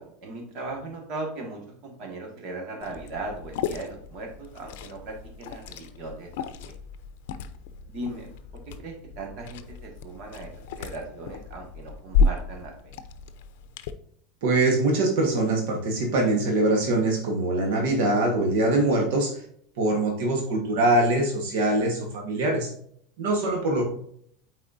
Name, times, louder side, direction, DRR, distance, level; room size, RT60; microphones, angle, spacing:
voice 1, 0.0-6.7 7.9-8.3 8.7-12.7, right 2 dB, 45° right, 1 dB, 1.7 m, -38 dB
Liquid, 2.8-13.9, left 4 dB, 70° left, 0.5 m, -32 dB
voice 2, 14.4-19.4 19.8-22.7 23.2-23.8, right 2 dB, 70° right, 0 dB, 1.3 m, -23 dB
8.5 x 4.2 x 2.7 m, 0.65 s
supercardioid pair, 155°, 0 cm